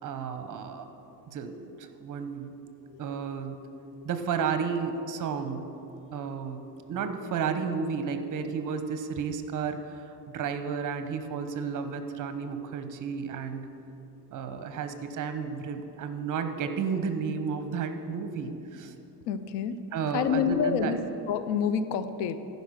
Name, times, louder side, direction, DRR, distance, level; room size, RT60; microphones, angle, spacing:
voice 1, 0.0-0.9 1.3-2.5 3.0-3.6 4.0-5.6 6.1-6.6 6.9-13.7 14.3-18.9 19.9-21.0, right 6 dB, 45° right, 8 dB, 0.9 m, -32 dB
voice 2, 19.3-19.8 20.1-21.0 21.3-22.4, left 8 dB, 80° left, 12 dB, 0.7 m, -28 dB
13.5 x 5.4 x 6.4 m, 3.0 s
cardioid pair, 115°, 42 cm